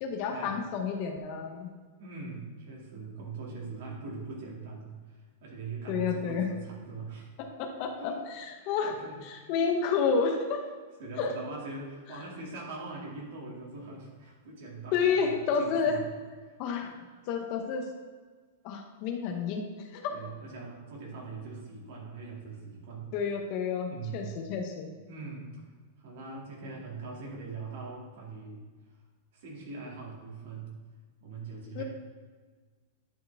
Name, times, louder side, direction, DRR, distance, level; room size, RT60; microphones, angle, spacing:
voice 1, 0.0-1.7 5.9-6.5 7.4-8.9 9.2-10.6 11.2-11.3 14.9-16.0 16.6-16.9 17.3-17.8 18.6-20.1 23.1-24.9 31.7-31.8, left 6 dB, 35° left, 4 dB, 0.7 m, -30 dB
voice 2, 2.0-7.3 8.0-8.2 8.6-9.7 11.0-16.0 16.5-17.0 20.1-23.1 23.9-24.3 25.1-25.6 26.0-28.6 29.3-30.7 31.2-31.8, right 3 dB, 55° right, -2 dB, 2.2 m, -42 dB
10.5 x 4.6 x 3.4 m, 1.5 s
supercardioid pair, 170°, 0 cm